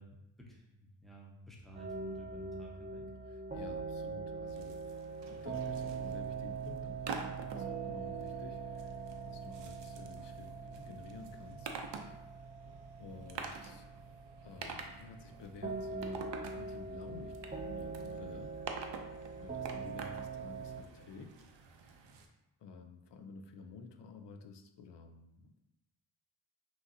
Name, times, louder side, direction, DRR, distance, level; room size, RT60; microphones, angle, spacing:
voice 1, 0.0-3.1, equal, ahead, -2 dB, 0.8 m, -53 dB
sound 1, 1.6-3.4 5.2-6.2, equal, 30° left, 1.2 m, -61 dB
sound 2, 1.7-20.8, right 4 dB, 20° right, 0.4 m, -43 dB
voice 2, 3.3-11.7 12.2-12.5 13.0-13.9 14.4-19.1 19.4-21.4 21.8-22.0 22.6-25.6, left 4 dB, 70° left, 6 dB, 0.6 m, -52 dB
sound 3, 4.5-22.3, right 5 dB, 70° right, 0.6 m, -48 dB
5.8 x 2.7 x 2.6 m, 0.94 s
wide cardioid pair, 90°, 44 cm